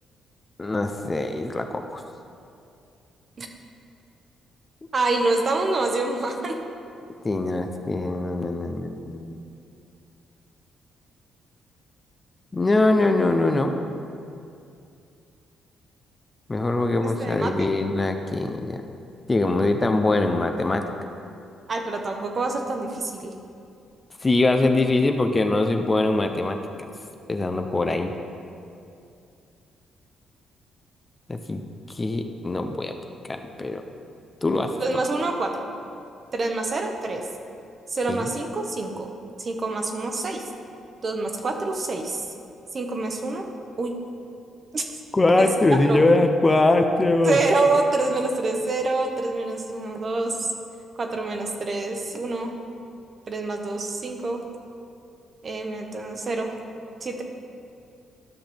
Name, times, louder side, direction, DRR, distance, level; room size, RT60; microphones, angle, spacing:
voice 1, 0.6-2.0 7.2-9.4 12.5-13.7 16.5-18.8 19.3-20.8 24.2-26.6 27.3-28.1 31.3-31.6 31.9-32.9 33.3-33.8 34.4-34.7 38.1-38.3 45.1-47.4, left 2 dB, 25° left, 5 dB, 0.5 m, -22 dB
voice 2, 4.9-6.6 17.2-17.7 21.7-23.3 34.8-35.7 36.3-37.2 37.9-39.1 39.4-40.4 41.0-42.2 42.7-43.4 43.8-43.9 44.7-44.9 45.4-45.5 45.9-46.0 47.2-50.5 51.0-52.6 53.3-54.4 55.4-56.6 57.0-57.2, right 3 dB, 40° right, 3 dB, 1.0 m, -26 dB
12.5 x 5.8 x 3.5 m, 2.5 s
cardioid pair, 90°, 0 cm